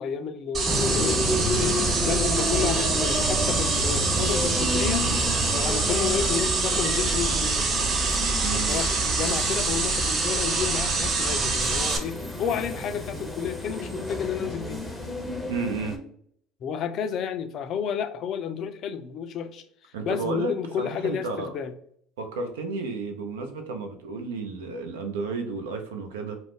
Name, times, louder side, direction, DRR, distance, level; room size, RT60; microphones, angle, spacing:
voice 1, 0.0-5.0 5.5-7.7 8.5-14.9 16.6-19.6 20.0-21.7, left 7 dB, 50° left, 0.4 m, -31 dB
sound 1, 0.5-12.0, right 3 dB, 40° right, 0.6 m, -25 dB
sound 2, 0.6-16.0, left 1 dB, ahead, 0.6 m, -31 dB
voice 2, 8.4-8.8 15.5-16.0 19.9-20.5 20.8-21.5 22.2-26.4, right 4 dB, 80° right, 0.5 m, -32 dB
2.4 x 2.1 x 3.4 m
hypercardioid pair, 70°, 0 cm